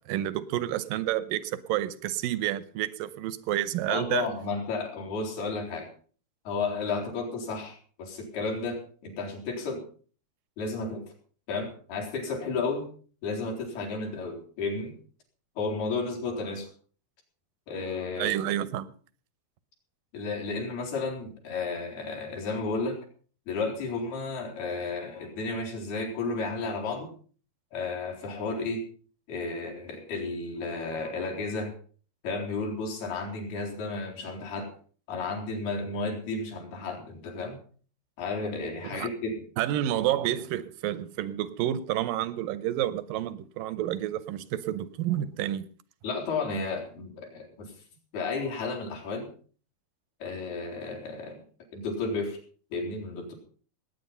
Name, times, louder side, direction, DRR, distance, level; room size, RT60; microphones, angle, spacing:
voice 1, 0.0-4.3 18.2-18.9 38.8-39.1 39.6-45.7, right 12 dB, 75° right, 2.1 m, -29 dB
voice 2, 3.9-5.9 6.5-9.8 10.6-11.1 11.5-12.9 13.2-14.9 15.6-16.7 17.7-18.6 20.1-23.0 23.5-27.1 27.7-28.8 29.3-31.7 32.2-34.7 35.1-37.6 38.2-39.4 46.0-47.7 48.1-49.3 50.2-51.4 51.7-52.4 52.7-53.3, left 3 dB, 70° left, 5.5 m, -32 dB
19.0 x 9.4 x 5.5 m
omnidirectional pair, 4.6 m